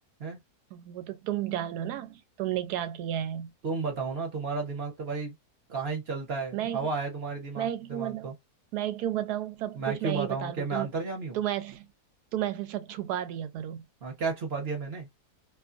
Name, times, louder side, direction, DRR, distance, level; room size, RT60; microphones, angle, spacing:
voice 1, 0.7-3.5 6.5-6.8 7.6-8.3 8.7-10.9 11.3-11.9 12.3-13.8, right 12 dB, 90° right, 1.1 m, -32 dB
voice 2, 3.6-5.3 5.7-8.3 9.7-11.4 14.0-15.1, right 4 dB, 50° right, 0.9 m, -32 dB
2.5 x 2.4 x 2.5 m
omnidirectional pair, 1.6 m